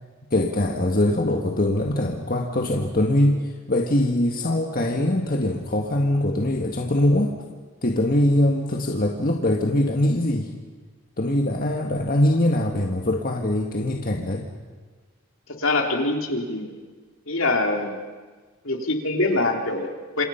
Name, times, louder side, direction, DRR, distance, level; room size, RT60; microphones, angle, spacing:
voice 1, 0.3-7.4 7.8-10.5 11.2-14.5, left 1 dB, 40° left, 1 dB, 1.6 m, -22 dB
voice 2, 15.6-16.7 17.3-18.0 18.6-20.2, left 2 dB, 65° left, 2 dB, 3.4 m, -24 dB
27.5 x 27.0 x 5.7 m, 1.4 s
head